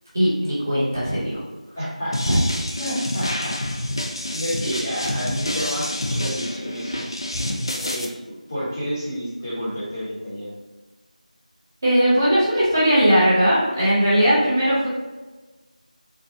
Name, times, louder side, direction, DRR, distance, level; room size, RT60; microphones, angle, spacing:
voice 1, 0.1-1.4 2.3-2.4 11.8-14.9, equal, 20° right, -10 dB, 0.7 m, -19 dB
voice 2, 1.7-2.4 2.8-3.9 4.3-7.1 7.9-10.5, equal, 20° left, -10 dB, 0.9 m, -30 dB
sound 1, 2.1-8.0, left 1 dB, 35° left, 0.3 m, -28 dB
3.9 x 2.2 x 2.8 m, 1.2 s
figure-of-eight pair, 175°, 4 cm